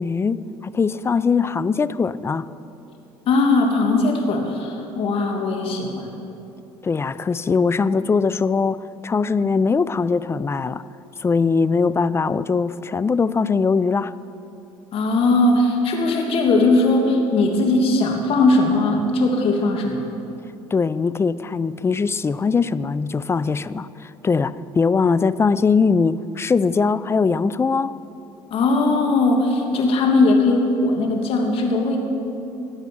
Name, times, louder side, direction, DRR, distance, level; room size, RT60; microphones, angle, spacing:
voice 1, 0.0-2.5 6.8-10.8 11.2-14.1 20.7-28.0, left 5 dB, 25° left, 17 dB, 0.4 m, -21 dB
voice 2, 3.3-6.1 14.9-20.0 28.5-32.0, left 2 dB, 60° left, 2 dB, 2.3 m, -19 dB
18.5 x 8.1 x 6.1 m, 2.8 s
supercardioid pair, 90°, 11 cm